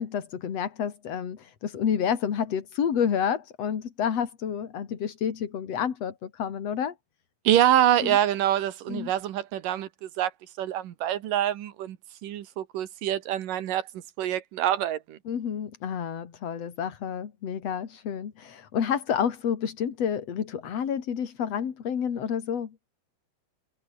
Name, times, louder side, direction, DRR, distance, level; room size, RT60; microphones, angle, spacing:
voice 1, 0.0-6.9 8.0-8.2 8.9-9.1 15.2-22.7, left 8 dB, 50° left, 3.1 m, -29 dB
voice 2, 7.4-10.3 10.6-12.0 12.2-13.9 14.2-15.2, right 11 dB, 75° right, 3.1 m, -25 dB
omnidirectional pair, 3.9 m